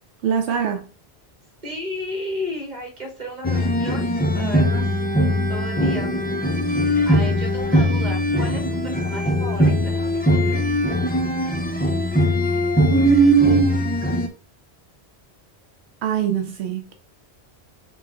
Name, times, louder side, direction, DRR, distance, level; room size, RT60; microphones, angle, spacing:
voice 1, 0.2-0.9 12.9-14.0 16.0-16.9, right 6 dB, 85° right, 0.9 m, -19 dB
voice 2, 1.6-4.1 4.3-4.9 5.5-6.1 6.8-10.7, left 1 dB, 45° right, 1.3 m, -34 dB
sound 1, 3.4-14.3, left 1 dB, 10° left, 0.5 m, -21 dB
5.6 x 2.5 x 3.7 m
omnidirectional pair, 1.1 m